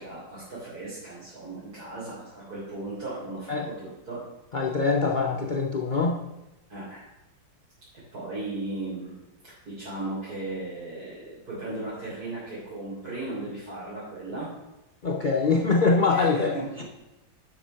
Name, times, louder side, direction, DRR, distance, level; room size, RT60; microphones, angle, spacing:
voice 1, 0.0-4.2 6.7-7.1 8.1-9.1 9.4-14.5 16.1-16.8, right 2 dB, 50° right, -10 dB, 4.0 m, -36 dB
voice 2, 4.5-6.2 15.0-16.8, left 4 dB, 60° left, -1 dB, 0.5 m, -24 dB
9.8 x 6.1 x 6.3 m, 0.99 s
omnidirectional pair, 2.1 m